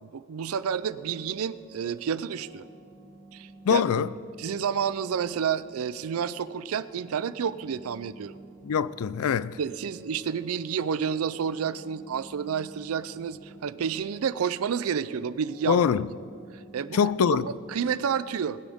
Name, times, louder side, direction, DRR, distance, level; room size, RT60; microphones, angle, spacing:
voice 1, 0.0-2.6 3.3-3.8 4.4-8.4 9.6-15.8 16.5-17.0 17.4-18.6, right 7 dB, 90° right, 0.4 m, -30 dB
sound 1, 0.6-18.0, right 2 dB, 35° right, 2.2 m, -51 dB
voice 2, 3.6-4.1 8.6-9.6 15.7-16.1 16.9-17.5, left 7 dB, 85° left, 0.4 m, -23 dB
20.5 x 10.0 x 3.6 m
head